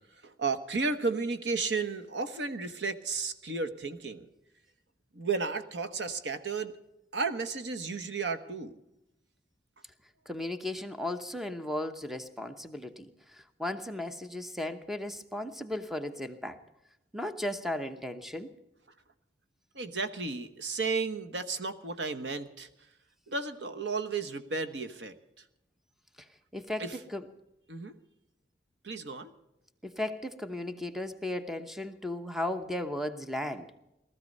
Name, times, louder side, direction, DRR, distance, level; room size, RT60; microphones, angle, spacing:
voice 1, 0.2-4.3 5.1-6.7 7.1-8.8 19.7-22.7 23.3-25.2 26.8-27.0 27.7-27.9 28.8-29.3, right 4 dB, 75° right, 9 dB, 1.2 m, -33 dB
voice 2, 10.3-16.6 17.1-18.5 26.5-27.3 29.8-33.7, left 1 dB, ahead, 8 dB, 0.9 m, -36 dB
18.5 x 14.0 x 5.4 m, 0.89 s
head